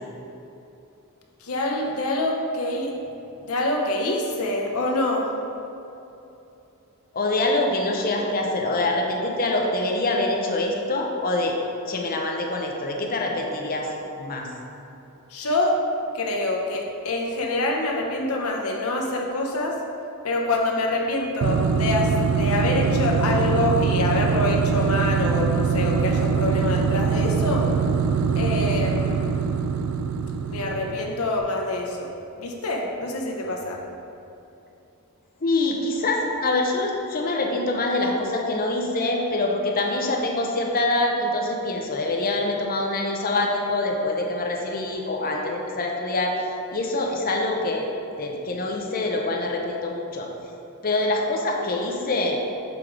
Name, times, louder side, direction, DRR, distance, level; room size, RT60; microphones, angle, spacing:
voice 1, 1.4-2.9 3.4-5.3 15.3-15.7 16.1-19.8 20.2-27.6 28.4-29.4 30.4-33.8, left 2 dB, 75° left, 0 dB, 0.9 m, -26 dB
voice 2, 7.1-11.5 11.9-13.9 14.2-14.5 35.4-46.3 46.7-47.9 48.2-50.3 50.8-52.4, left 2 dB, 40° left, 1 dB, 0.7 m, -25 dB
sound 1, 21.4-31.2, right 6 dB, 65° right, 0.3 m, -23 dB
6.8 x 3.8 x 4.7 m, 2.9 s
head